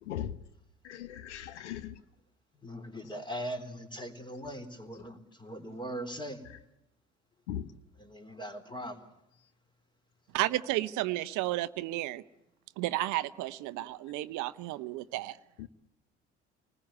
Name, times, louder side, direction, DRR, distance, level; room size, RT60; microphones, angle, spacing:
voice 1, 0.0-0.4 0.8-2.0 7.5-7.7 15.6-15.7, left 10 dB, 75° left, 0.9 m, -38 dB
voice 2, 2.5-6.5 8.0-9.1, equal, 15° left, 3.8 m, -40 dB
voice 3, 10.3-12.2 12.8-15.4, right 17 dB, 60° right, 0.9 m, -32 dB
27.5 x 20.0 x 8.5 m
figure-of-eight pair, 50°, 35 cm